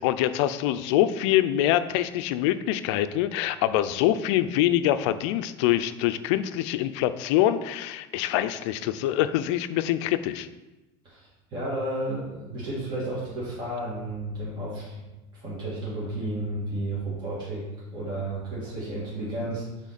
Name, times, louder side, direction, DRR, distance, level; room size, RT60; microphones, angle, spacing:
voice 1, 0.0-10.5, left 12 dB, 70° left, 12 dB, 0.4 m, -24 dB
voice 2, 11.0-15.0 15.3-17.6 17.9-19.9, right 1 dB, 30° right, -8 dB, 2.1 m, -32 dB
7.3 x 3.7 x 4.1 m, 1.1 s
supercardioid pair, 125°, 15 cm